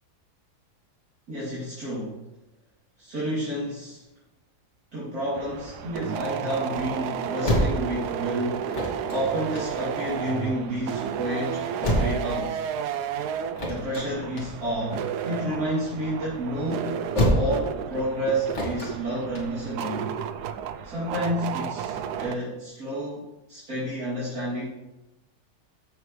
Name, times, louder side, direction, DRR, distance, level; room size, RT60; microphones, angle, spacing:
voice 1, 1.3-2.2 3.0-4.0 4.9-8.7 9.1-12.6 13.6-17.0 17.3-20.1 20.8-24.7, equal, 65° right, -10 dB, 3.5 m, -30 dB
sound 1, 5.3-20.7, equal, 45° left, 2.4 m, -31 dB
sound 2, 5.3-22.4, right 8 dB, 90° right, 1.2 m, -32 dB
14.5 x 6.7 x 3.2 m, 0.97 s
omnidirectional pair, 1.7 m